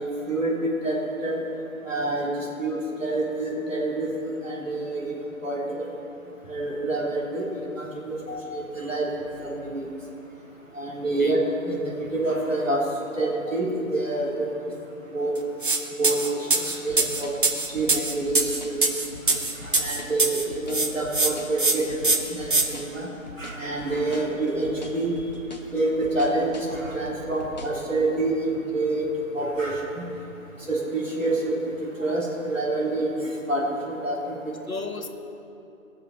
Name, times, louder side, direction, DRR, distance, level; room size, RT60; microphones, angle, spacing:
voice 1, 0.0-1.6 1.8-5.7 6.5-8.2 8.5-9.1 9.4-9.9 10.7-12.8 13.2-14.7 15.1-15.3 16.0-23.1 23.4-25.2 25.7-29.1 29.3-30.1 30.7-34.6, right 2 dB, 65° right, -4 dB, 3.5 m, -27 dB
voice 2, 8.3-8.7 11.2-11.4 13.5-13.6 34.7-35.1, left 3 dB, 80° left, 6 dB, 1.3 m, -34 dB
sound 1, 15.6-15.8 16.0-20.4 20.7-21.3 21.6-21.7 22.0-22.6, right 3 dB, 40° right, 0.9 m, -22 dB
sound 2, 16.9-27.8, equal, 30° left, 1.0 m, -41 dB
18.0 x 6.9 x 5.7 m, 2.8 s
figure-of-eight pair, 160°, 42 cm